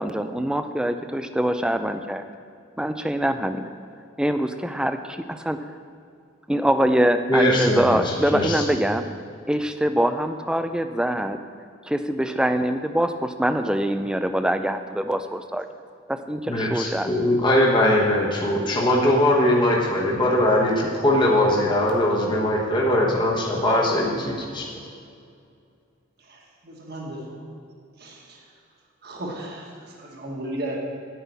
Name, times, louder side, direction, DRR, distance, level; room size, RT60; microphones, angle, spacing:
voice 1, 0.0-2.2 2.8-3.7 4.2-5.6 6.5-9.1 9.5-11.4 11.9-15.7 16.1-17.1, right 1 dB, 5° right, 8 dB, 0.3 m, -24 dB
voice 2, 7.3-8.6 16.5-24.7, left 1 dB, 25° left, -3 dB, 1.2 m, -21 dB
voice 3, 26.3-27.2 28.0-28.4 29.0-29.7 30.0-30.8, right 1 dB, 50° right, -2 dB, 1.5 m, -34 dB
9.5 x 5.6 x 8.2 m, 2.4 s
head